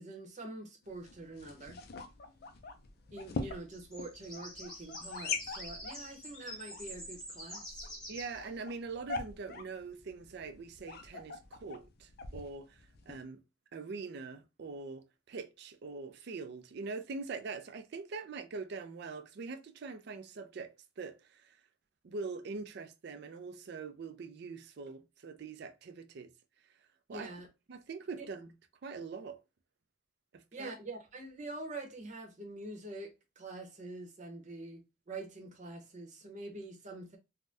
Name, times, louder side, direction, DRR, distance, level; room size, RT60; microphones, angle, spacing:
voice 1, 0.0-1.8 3.1-7.6 27.1-27.5 28.2-28.3 30.5-37.2, right 2 dB, 40° right, 0.8 m, -45 dB
sound 1, 0.8-13.2, left 4 dB, 55° left, 0.4 m, -44 dB
sound 2, 3.6-8.5, equal, 5° left, 1.1 m, -47 dB
voice 2, 8.1-13.4 13.7-21.6 22.0-26.3 27.1-27.3 27.7-28.5 28.8-29.4 30.3-30.7, right 4 dB, 60° right, 0.4 m, -43 dB
3.4 x 2.1 x 2.5 m
head